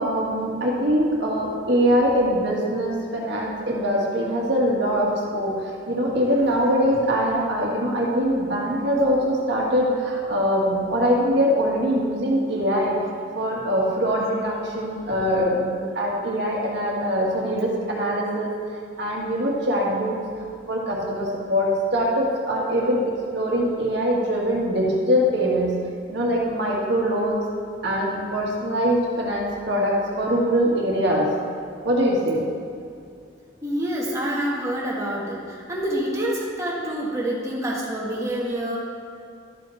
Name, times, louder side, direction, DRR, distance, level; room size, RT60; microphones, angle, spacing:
voice 1, 0.0-13.0 13.3-18.5 19.0-20.2 20.7-25.7 26.1-27.4 27.8-31.3 31.8-32.4, equal, 60° right, -3 dB, 1.6 m, -23 dB
voice 2, 33.6-38.8, right 1 dB, 15° right, -5 dB, 1.5 m, -27 dB
12.5 x 5.1 x 4.4 m, 2.4 s
head